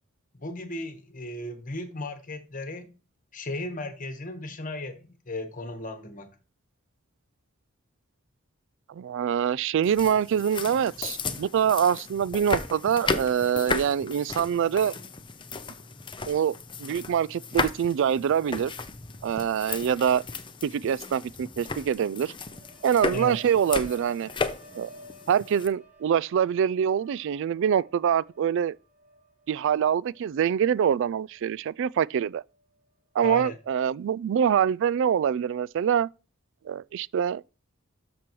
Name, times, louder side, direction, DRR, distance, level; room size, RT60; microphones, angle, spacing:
voice 1, 0.4-2.9 3.3-6.3 23.1-23.4 33.2-33.6, left 2 dB, 40° left, 1.4 m, -36 dB
voice 2, 8.9-15.0 16.3-18.7 19.2-20.2 20.6-22.3 22.8-24.3 24.8-24.9 25.3-28.8 29.5-32.4 33.1-36.1 36.7-37.4, right 8 dB, 60° right, 0.3 m, -25 dB
sound 1, 9.8-25.7, left 4 dB, 25° left, 0.7 m, -35 dB
sound 2, 22.3-32.1 32.4-32.9, right 2 dB, 40° right, 5.7 m, -53 dB
13.0 x 6.0 x 3.1 m
head